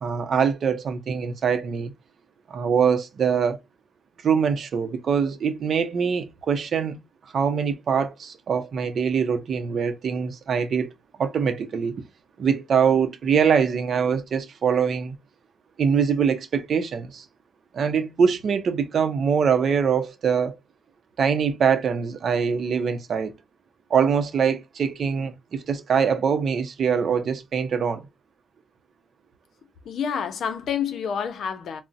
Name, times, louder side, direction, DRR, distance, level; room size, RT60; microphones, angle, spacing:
voice 1, 0.0-1.9 2.5-3.6 4.2-7.0 7.3-10.9 11.2-12.0 12.4-15.2 15.8-17.2 17.7-20.5 21.2-23.3 23.9-28.1, right 6 dB, 60° right, 0.5 m, -23 dB
voice 2, 29.9-31.8, left 7 dB, 75° left, 0.5 m, -28 dB
3.9 x 2.0 x 2.4 m
cardioid pair, 110°, 0 cm